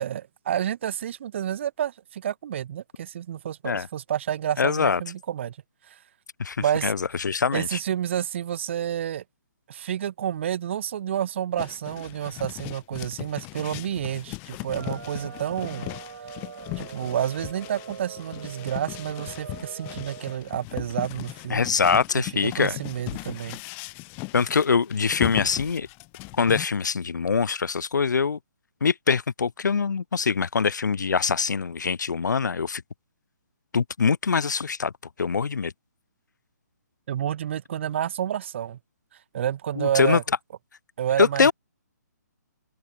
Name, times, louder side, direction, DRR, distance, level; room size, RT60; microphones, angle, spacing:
voice 1, 0.0-5.6 5.9-6.0 6.6-6.9 7.5-9.2 9.7-15.9 16.8-21.6 22.1-23.6 37.1-38.8 39.3-40.2 41.0-41.5, right 10 dB, 40° right, 0.9 m, -29 dB
voice 2, 4.6-5.0 6.4-6.6 6.8-7.8 21.5-22.8 24.3-25.9 26.4-28.4 28.8-32.8 33.7-34.9 35.2-35.7 39.8-40.2 41.2-41.5, left 5 dB, 80° left, 1.4 m, -23 dB
sound 1, 11.6-26.7, left 30 dB, 20° left, 1.8 m, -38 dB
sound 2, 14.7-20.4, right 7 dB, 60° right, 5.3 m, -42 dB
open air
hypercardioid pair, 160°, 10 cm